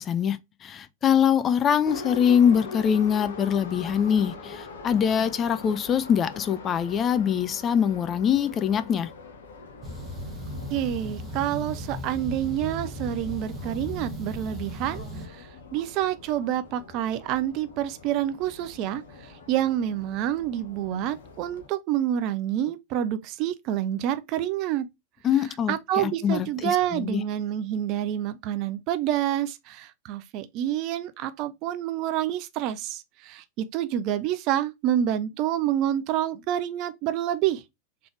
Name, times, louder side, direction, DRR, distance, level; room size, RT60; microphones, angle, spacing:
voice 1, 0.0-9.1 25.2-27.2, left 8 dB, 25° left, 0.4 m, -23 dB
Subway metro underground, 1.9-21.7, left 4 dB, 65° left, 0.7 m, -43 dB
sound 1, 9.8-15.3, equal, 25° right, 1.1 m, -36 dB
voice 2, 10.7-24.9 25.7-37.6, right 11 dB, 40° right, 0.5 m, -28 dB
3.8 x 3.3 x 3.2 m
figure-of-eight pair, 90°, 0 cm